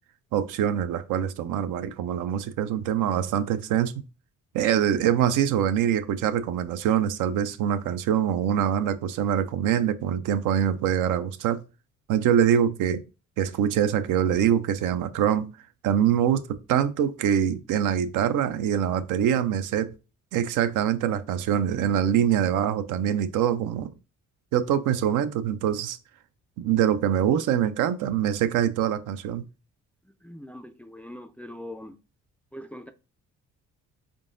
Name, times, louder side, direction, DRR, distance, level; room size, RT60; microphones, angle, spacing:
voice 1, 0.3-3.9 4.5-11.6 12.1-13.0 13.4-15.5 15.8-19.9 20.3-23.9 24.5-26.0 26.6-29.4, right 9 dB, 85° right, 0.5 m, -24 dB
voice 2, 30.0-32.0 32.5-32.9, left 1 dB, 5° left, 0.3 m, -42 dB
3.7 x 3.7 x 2.5 m
cardioid pair, 90°, 30 cm